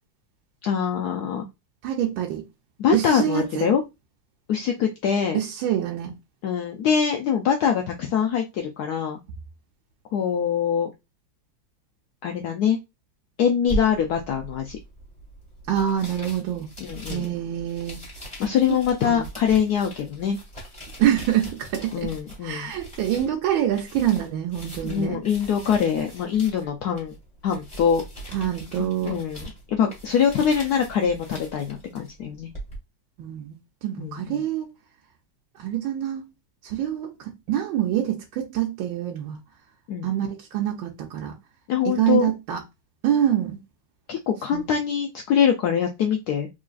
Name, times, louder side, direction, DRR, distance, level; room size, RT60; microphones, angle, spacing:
voice 1, 0.6-1.4 2.8-3.8 4.5-5.4 6.4-9.2 10.1-10.9 12.2-12.8 13.4-14.8 16.8-17.3 18.4-20.4 21.9-22.7 24.8-27.1 27.4-28.0 28.8-32.5 34.0-34.4 39.9-40.1 41.7-42.3 44.1-46.5, left 7 dB, 75° left, 0.9 m, -24 dB
voice 2, 1.8-2.4 2.9-3.7 5.3-6.1 15.7-16.7 17.1-18.0 18.7-18.8 19.0-19.3 21.0-22.1 22.4-25.2 28.3-29.2 33.2-33.6 33.8-34.7 35.6-36.2 36.6-39.4 40.0-41.3 41.8-42.6 43.0-43.6 44.5-44.6, right 11 dB, 80° right, 1.4 m, -25 dB
sound 1, 13.7-32.8, right 1 dB, 5° left, 1.5 m, -40 dB
3.8 x 3.0 x 2.4 m
omnidirectional pair, 2.1 m